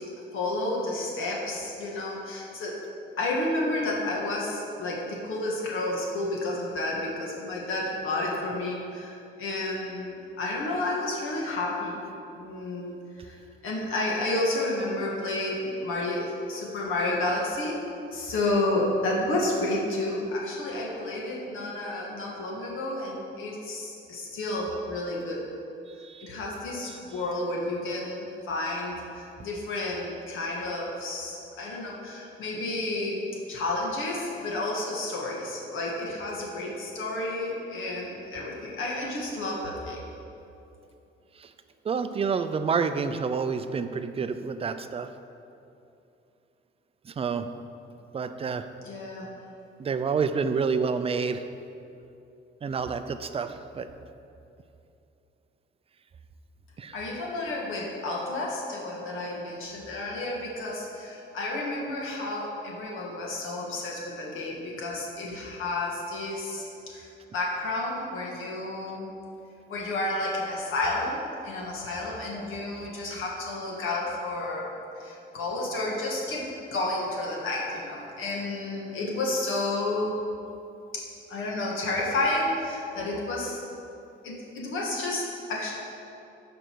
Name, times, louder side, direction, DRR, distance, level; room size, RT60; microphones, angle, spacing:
voice 1, 0.3-2.8 3.2-12.0 12.3-17.8 18.1-25.4 26.2-40.1 48.8-49.3 56.9-69.1 69.7-80.2 80.9-81.0 81.3-83.6 84.2-85.7, left 2 dB, 80° left, -3 dB, 1.6 m, -31 dB
voice 2, 41.9-45.1 47.2-47.5 48.1-48.6 49.8-51.4 52.6-53.5 53.7-53.9 56.8-56.9, right 5 dB, 30° right, 10 dB, 0.4 m, -28 dB
13.5 x 5.2 x 4.6 m, 2.8 s
cardioid pair, 140°, 21 cm